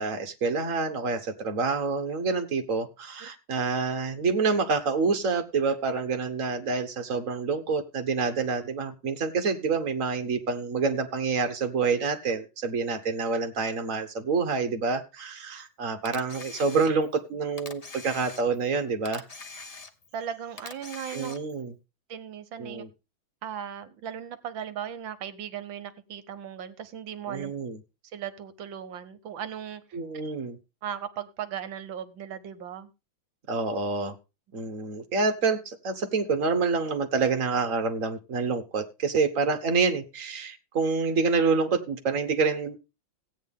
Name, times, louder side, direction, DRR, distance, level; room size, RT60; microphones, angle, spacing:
voice 1, 0.0-19.2 21.1-21.7 22.6-22.9 27.3-27.8 29.9-30.6 33.5-34.1 34.5-42.8, right 4 dB, 45° right, 8 dB, 1.5 m, -27 dB
Camera, 16.0-17.2 17.6-18.7 19.0-20.2 20.6-21.6, left 4 dB, 50° left, 0.4 m, -43 dB
voice 2, 20.1-21.4 22.1-22.8 23.4-27.5 28.1-30.0 30.8-32.9, right 9 dB, 70° right, 13 dB, 1.6 m, -37 dB
16.0 x 9.2 x 3.6 m, 0.29 s
omnidirectional pair, 2.3 m